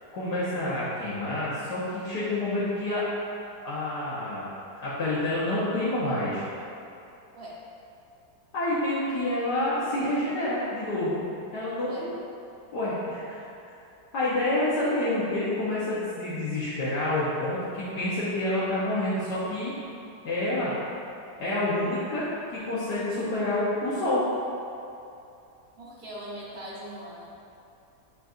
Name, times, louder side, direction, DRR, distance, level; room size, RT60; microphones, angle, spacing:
voice 1, 0.1-3.0 3.6-4.4 4.8-6.4 8.5-11.2 11.5-11.9 12.7-13.2 14.1-19.7 20.2-20.7 21.4-24.2, left 1 dB, 75° left, -11 dB, 1.6 m, -28 dB
voice 2, 25.8-27.4, equal, 40° right, -7 dB, 1.2 m, -40 dB
9.6 x 4.0 x 2.5 m, 2.7 s
omnidirectional pair, 1.8 m